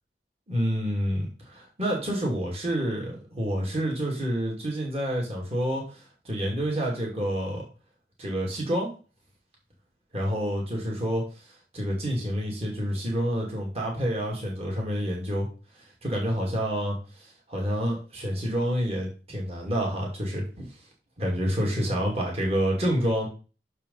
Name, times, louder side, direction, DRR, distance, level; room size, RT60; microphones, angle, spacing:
voice 1, 0.5-7.6 8.2-8.9 10.1-11.2 11.7-15.5 16.0-17.0 17.5-20.7 21.2-23.3, equal, 35° right, -2 dB, 2.6 m, -28 dB
6.6 x 5.4 x 5.6 m, 0.35 s
head